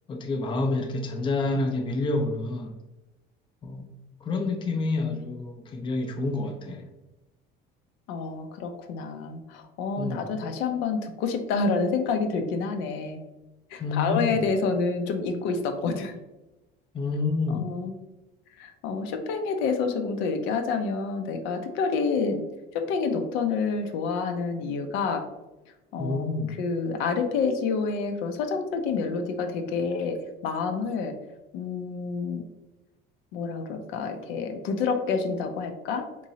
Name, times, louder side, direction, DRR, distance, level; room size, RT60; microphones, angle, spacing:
voice 1, 0.1-2.8 3.6-3.9 4.2-6.9 10.0-10.3 13.8-14.4 16.9-17.7 26.0-26.5, left 3 dB, 25° left, 0.5 m, -28 dB
voice 2, 8.1-13.2 13.7-16.2 17.5-17.9 18.6-22.4 22.7-25.2 25.9-26.3 26.6-31.2 31.5-32.4 33.3-36.1, left 4 dB, 80° left, 0.6 m, -28 dB
3.6 x 3.0 x 2.8 m
cardioid pair, 135°, 20 cm